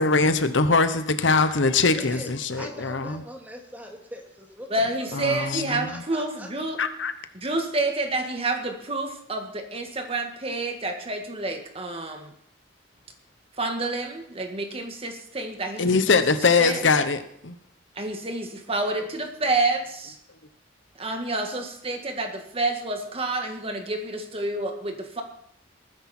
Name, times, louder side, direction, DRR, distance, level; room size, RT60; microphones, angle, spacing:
voice 1, 0.0-3.0 5.1-6.0 6.8-7.1 15.8-17.5, left 4 dB, 80° left, 10 dB, 1.1 m, -22 dB
voice 2, 1.9-4.7 5.0-5.2 5.6-6.5 18.7-19.6, equal, 10° right, 1 dB, 2.4 m, -42 dB
voice 3, 4.7-6.8 7.3-12.3 13.6-16.2 16.6-16.8 18.0-20.2 21.0-25.2, right 2 dB, 30° right, 4 dB, 1.8 m, -29 dB
20.0 x 10.0 x 4.4 m, 0.72 s
head